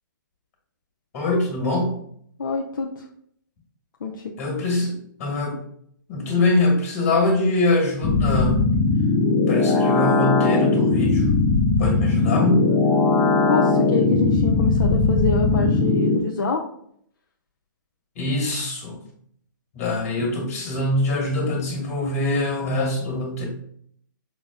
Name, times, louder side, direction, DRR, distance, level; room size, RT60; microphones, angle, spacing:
voice 1, 1.1-1.9 4.4-5.6 6.1-8.6 9.5-11.3 11.8-12.7 18.2-19.0 19.7-23.5, left 2 dB, 45° left, 1 dB, 1.7 m, -23 dB
voice 2, 2.4-3.0 4.0-4.2 13.5-16.6, left 4 dB, 70° left, 1 dB, 0.6 m, -26 dB
sound 1, 8.0-16.2, left 3 dB, 20° left, 0.5 m, -19 dB
5.9 x 2.1 x 3.6 m, 0.66 s
hypercardioid pair, 140°, 11 cm